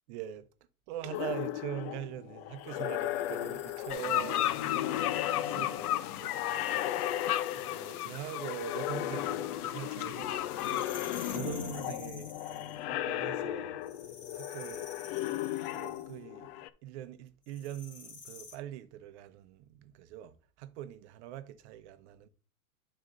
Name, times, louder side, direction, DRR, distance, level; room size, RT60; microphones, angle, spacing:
voice 1, 0.1-0.5 0.9-7.0 7.5-13.8 14.3-15.4 15.7-22.3, right 12 dB, 50° right, 0.8 m, -43 dB
sound 1, 1.0-8.1 8.3-16.7, left 13 dB, 45° left, 0.6 m, -36 dB
sound 2, 1.1-1.5 2.6-4.9 6.1-9.3 10.4-12.8 13.8-16.2 17.5-18.5, left 5 dB, 25° left, 1.6 m, -51 dB
sound 3, 3.9-11.4, left 12 dB, 85° left, 0.6 m, -35 dB
11.0 x 4.4 x 2.5 m
hypercardioid pair, 120°, 44 cm